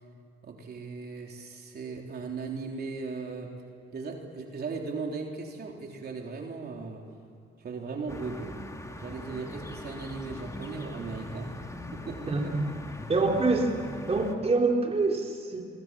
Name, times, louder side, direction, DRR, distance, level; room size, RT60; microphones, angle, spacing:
voice 1, 0.4-3.5 3.9-7.1 7.6-8.6 9.0-11.6 11.9-12.6, right 4 dB, 55° right, 1 dB, 3.6 m, -37 dB
sound 1, 8.1-14.3, left 1 dB, 15° left, 2.8 m, -41 dB
voice 2, 12.3-12.7 13.1-13.7 14.1-15.6, right 3 dB, 30° right, 1 dB, 3.6 m, -25 dB
27.5 x 23.5 x 7.6 m, 2.5 s
cardioid pair, 90°, 20 cm